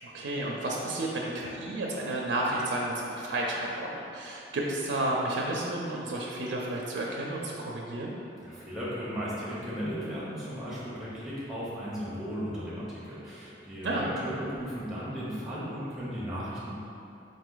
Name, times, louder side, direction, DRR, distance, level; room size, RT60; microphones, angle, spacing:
voice 1, 0.0-8.1 13.8-14.1, right 1 dB, 70° right, -3 dB, 0.4 m, -31 dB
voice 2, 8.4-16.7, equal, ahead, -9 dB, 0.9 m, -36 dB
3.8 x 2.6 x 3.8 m, 2.7 s
head